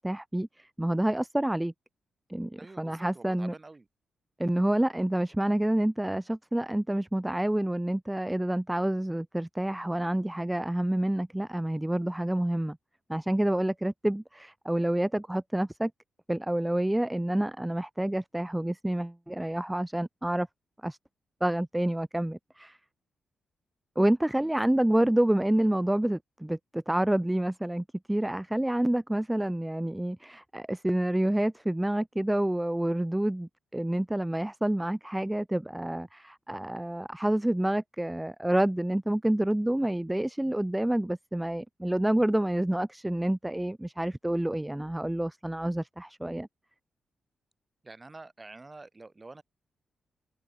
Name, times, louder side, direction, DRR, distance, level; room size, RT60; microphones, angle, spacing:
voice 1, 0.0-1.7 2.3-3.5 4.4-12.8 13.1-15.9 16.3-20.5 20.8-21.0 21.4-22.8 24.0-46.5, right 1 dB, 10° right, 0.6 m, -28 dB
voice 2, 2.6-3.9 24.4-24.5 47.8-49.4, right 3 dB, 25° right, 7.4 m, -47 dB
cardioid pair, 100°, 0 cm